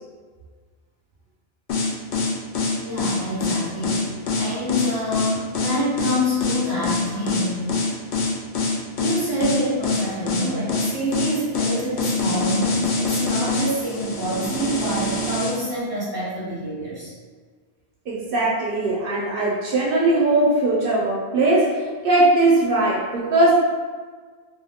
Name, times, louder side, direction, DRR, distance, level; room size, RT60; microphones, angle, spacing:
sound 1, 1.7-15.6, left 3 dB, 65° left, 0.7 m, -24 dB
voice 1, 2.8-7.7 9.0-17.1, equal, 25° left, -11 dB, 0.9 m, -27 dB
voice 2, 18.1-23.5, right 2 dB, 65° right, -5 dB, 0.7 m, -20 dB
2.5 x 2.2 x 3.4 m, 1.5 s
omnidirectional pair, 1.1 m